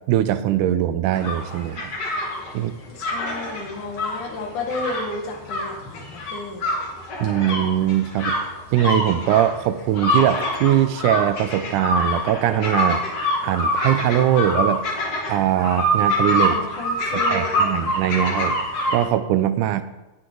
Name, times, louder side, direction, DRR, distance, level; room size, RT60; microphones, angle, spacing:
voice 1, 0.1-1.9 2.5-2.7 7.2-8.3 8.7-13.0 13.4-14.8 15.3-16.6 17.1-18.6 18.9-19.8, right 11 dB, 80° right, 12 dB, 2.1 m, -21 dB
sound 1, 1.1-19.1, left 1 dB, 50° left, 3.0 m, -25 dB
voice 2, 2.9-6.6 16.5-17.9, left 2 dB, 75° left, 1 dB, 3.2 m, -32 dB
19.0 x 6.4 x 3.9 m, 1.0 s
omnidirectional pair, 3.7 m